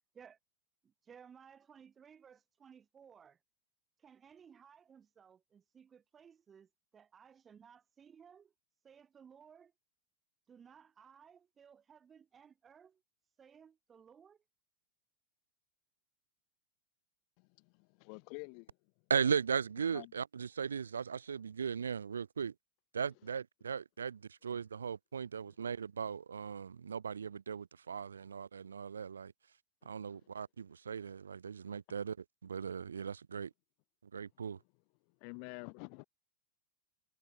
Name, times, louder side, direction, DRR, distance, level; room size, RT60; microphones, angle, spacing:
voice 1, 1.0-3.4 4.0-8.5 8.8-9.7 10.5-13.0 13.4-14.4, right 7 dB, 20° right, 1.0 m, -59 dB
voice 2, 17.4-18.8 19.9-20.1 35.2-36.0, left 40 dB or more, 45° left, 0.7 m, -48 dB
voice 3, 19.1-22.5 22.9-29.3 29.9-32.2 32.4-33.5 34.1-34.6, right 6 dB, 70° right, 0.5 m, -37 dB
figure-of-eight pair, 90°, 0 cm